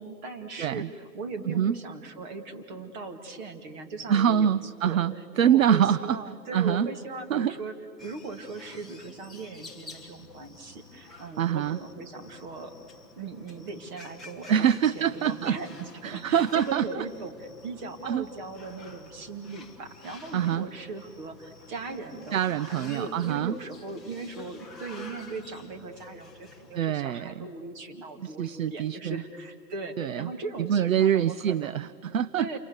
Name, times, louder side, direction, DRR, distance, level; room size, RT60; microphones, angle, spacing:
voice 1, 0.0-4.5 4.8-5.0 5.4-7.7 8.0-12.8 13.2-31.8 32.4-32.6, right 3 dB, 25° right, 6 dB, 2.3 m, -39 dB
voice 2, 0.6-0.9 1.5-1.8 4.1-6.2 6.5-6.9 7.3-7.5 11.4-11.8 14.5-15.6 16.0-16.9 18.0-18.2 20.3-20.7 22.3-23.6 26.7-27.5 28.2-29.2 30.0-30.3 30.6-32.6, right 9 dB, 55° right, 18 dB, 0.6 m, -25 dB
sound 1, 8.0-26.8, left 3 dB, ahead, 0.8 m, -50 dB
29.0 x 24.5 x 8.1 m, 2.4 s
hypercardioid pair, 155°, 48 cm